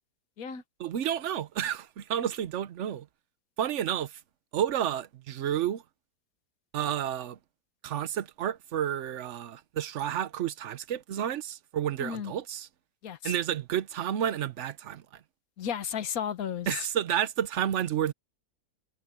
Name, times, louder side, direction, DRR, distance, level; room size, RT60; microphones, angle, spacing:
voice 1, 0.8-3.1 3.6-4.2 4.5-5.8 6.7-7.4 7.8-12.7 13.2-15.0 16.7-18.1, right 10 dB, 55° right, 1.0 m, -30 dB
voice 2, 12.0-12.3 13.0-13.3 15.6-16.9, left 8 dB, 65° left, 1.5 m, -34 dB
omnidirectional pair, 1.7 m